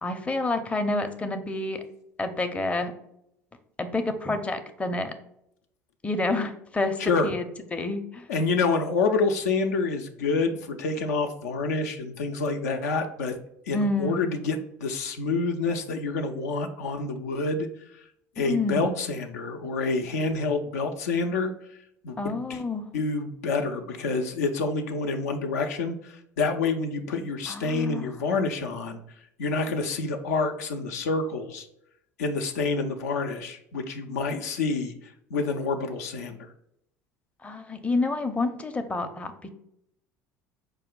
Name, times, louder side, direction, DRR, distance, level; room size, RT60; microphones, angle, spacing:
voice 1, 0.0-1.8 2.2-2.9 3.8-5.1 6.0-7.0 7.2-8.3 13.7-14.2 18.4-18.9 22.2-22.9 27.5-28.1 37.4-39.5, left 2 dB, 15° left, 7 dB, 0.5 m, -28 dB
voice 2, 7.0-7.3 8.3-13.4 13.7-17.7 18.4-21.5 22.0-22.6 22.9-29.0 29.4-31.7 32.2-36.5, left 3 dB, 80° left, 5 dB, 0.5 m, -28 dB
4.7 x 2.2 x 3.7 m, 0.75 s
hypercardioid pair, 70°, 9 cm